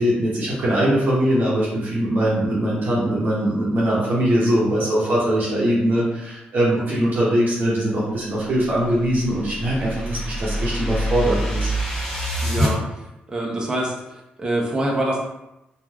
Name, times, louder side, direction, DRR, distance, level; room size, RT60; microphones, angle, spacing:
voice 1, 0.0-11.7, right 1 dB, 60° right, -6 dB, 0.8 m, -21 dB
sound 1, 8.7-12.7, equal, 15° left, 0.9 m, -26 dB
voice 2, 12.4-12.8 13.3-13.9 14.4-15.2, right 1 dB, 25° right, -2 dB, 0.7 m, -24 dB
3.0 x 2.4 x 2.3 m, 0.91 s
cardioid pair, 70°, 4 cm